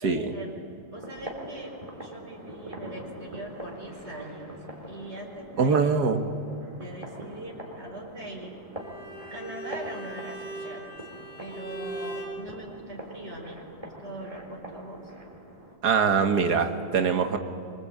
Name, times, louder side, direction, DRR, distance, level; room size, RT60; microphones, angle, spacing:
voice 1, 0.0-4.6 4.9-5.9 6.7-8.6 9.3-10.9 11.4-15.1, right 1 dB, 40° right, 0 dB, 5.0 m, -41 dB
sound 1, 0.9-15.8, right 1 dB, 20° right, 3.8 m, -43 dB
voice 2, 5.6-6.3 15.8-17.4, right 5 dB, 90° right, 6 dB, 2.1 m, -23 dB
Bowed string instrument, 8.7-12.4, right 1 dB, 60° left, 7.1 m, -39 dB
27.0 x 25.0 x 8.7 m, 2.5 s
omnidirectional pair, 1.7 m